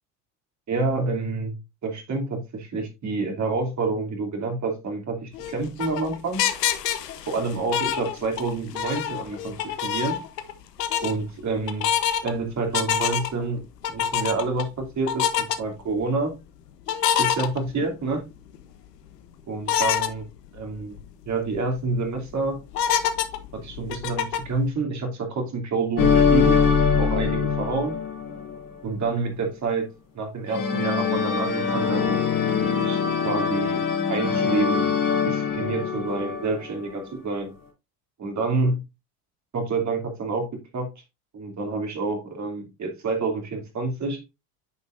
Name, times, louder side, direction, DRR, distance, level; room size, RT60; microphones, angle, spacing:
voice 1, 0.7-1.6 1.8-6.5 7.3-10.2 11.0-11.9 12.2-13.6 13.9-16.3 17.2-18.2 19.5-20.3 20.5-21.0 21.3-22.6 23.5-26.6 27.0-28.0 28.8-29.9 30.1-35.0 35.2-37.5 38.2-38.8 39.5-40.9 41.3-44.2, right 3 dB, 35° right, 2.9 m, -28 dB
sound 1, 5.3-8.5 8.8-10.5 10.8-11.1 11.7-12.3 12.7-13.4 13.8-14.6 15.1-15.6 16.9-18.1 18.5-18.6 19.7-20.1 20.6-20.7 21.0-21.1 21.6-21.9 22.7-24.6, left 9 dB, 85° left, 1.0 m, -25 dB
sound 2, 26.0-28.6 30.5-36.7, left 6 dB, 45° left, 3.1 m, -23 dB
9.6 x 5.3 x 2.6 m
hypercardioid pair, 80°, 47 cm